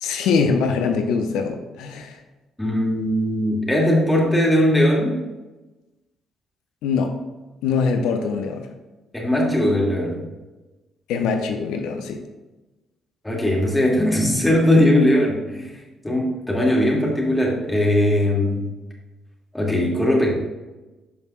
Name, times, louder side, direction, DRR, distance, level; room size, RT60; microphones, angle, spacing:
voice 1, 0.0-2.2 6.8-7.2 7.6-8.6 11.1-12.2, left 5 dB, 70° left, 6 dB, 0.7 m, -23 dB
voice 2, 2.6-5.2 9.1-10.2 13.2-15.7 16.0-18.6 19.5-20.3, left 1 dB, 10° left, -2 dB, 2.6 m, -19 dB
12.0 x 5.3 x 2.5 m, 1.1 s
hypercardioid pair, 45°, 0 cm